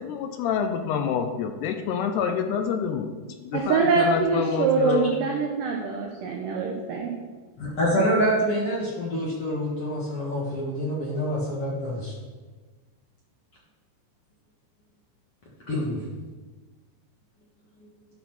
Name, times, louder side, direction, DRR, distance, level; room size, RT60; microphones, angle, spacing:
voice 1, 0.0-3.1 3.4-5.1, left 7 dB, 80° left, 6 dB, 2.6 m, -27 dB
voice 2, 3.5-7.2, right 4 dB, 85° right, 0 dB, 1.9 m, -24 dB
voice 3, 7.6-12.1 15.7-16.0, equal, 60° left, -5 dB, 1.6 m, -26 dB
12.5 x 4.3 x 5.9 m, 1.3 s
omnidirectional pair, 5.0 m